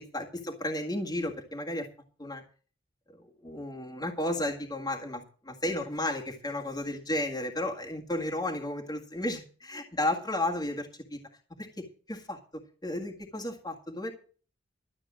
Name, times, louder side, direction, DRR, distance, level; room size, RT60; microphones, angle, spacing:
voice 1, 0.1-1.9 2.2-2.4 3.1-11.2 11.6-12.4 12.8-14.1, left 1 dB, 20° left, 1 dB, 1.8 m, -33 dB
13.0 x 7.9 x 7.3 m, 0.41 s
head